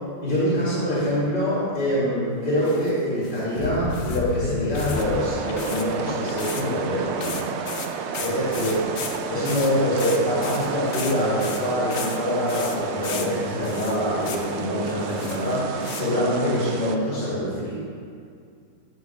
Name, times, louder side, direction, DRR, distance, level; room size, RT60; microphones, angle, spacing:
voice 1, 0.2-7.5 8.2-9.0 9.3-17.7, equal, 30° left, -9 dB, 2.1 m, -25 dB
sound 1, 2.6-2.9 3.2-4.3 4.7-5.1 5.3-5.9 6.4-6.6 6.9-7.0 7.2-12.2 12.5-13.3 13.6-14.5 14.8-16.0, left 6 dB, 55° left, 0.9 m, -36 dB
sound 2, 3.6-5.8 6.1-6.6, left 4 dB, 75° left, 1.3 m, -30 dB
sound 3, 5.0-17.0, right 5 dB, 75° right, 0.6 m, -31 dB
9.3 x 7.2 x 4.7 m, 2.3 s
omnidirectional pair, 1.8 m